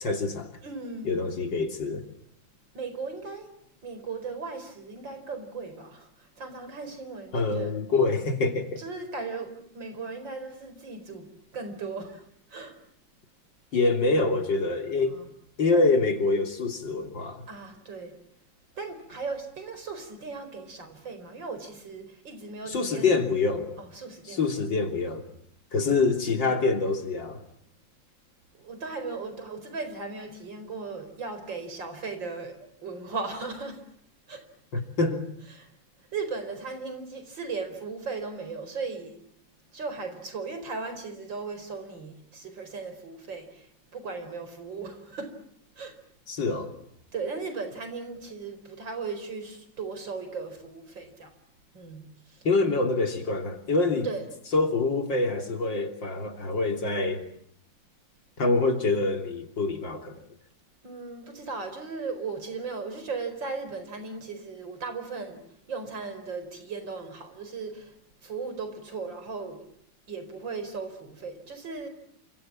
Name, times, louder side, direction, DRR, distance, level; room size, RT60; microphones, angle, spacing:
voice 1, 0.0-0.5 1.0-2.0 7.3-8.8 13.7-15.2 15.6-17.4 22.7-23.8 24.2-25.2 25.7-27.4 34.7-35.2 46.3-46.7 52.4-54.1 54.5-57.3 58.4-60.1, left 3 dB, 70° left, 5 dB, 3.8 m, -25 dB
voice 2, 0.6-1.2 2.7-3.5 3.8-6.1 6.4-7.8 8.8-11.3 11.5-12.2 12.5-12.7 15.1-15.2 17.5-18.1 18.8-23.1 23.8-24.4 28.5-33.8 34.3-34.5 35.5-35.7 36.1-39.1 39.7-43.7 43.9-45.3 45.8-45.9 47.1-51.3 51.7-52.0 54.0-54.2 60.8-65.4 65.7-67.9 68.2-69.6 70.1-71.9, right 4 dB, 70° right, 9 dB, 5.2 m, -37 dB
29.0 x 26.5 x 7.5 m, 0.69 s
omnidirectional pair, 2.1 m